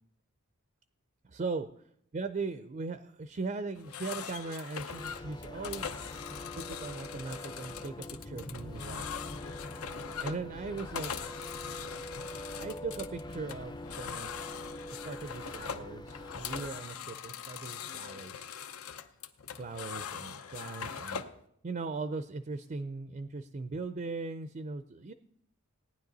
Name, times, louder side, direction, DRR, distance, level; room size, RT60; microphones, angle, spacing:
voice 1, 1.2-1.7 2.1-6.0 6.3-9.1 10.2-11.3 12.6-14.5 14.9-18.5 19.6-21.2 21.6-25.1, right 3 dB, 35° right, 11 dB, 0.4 m, -39 dB
sound 1, 3.8-21.4, left 7 dB, 80° left, 0.7 m, -42 dB
sound 2, 4.9-16.7, left 1 dB, 20° left, 0.5 m, -44 dB
18.0 x 9.9 x 4.0 m, 0.72 s
head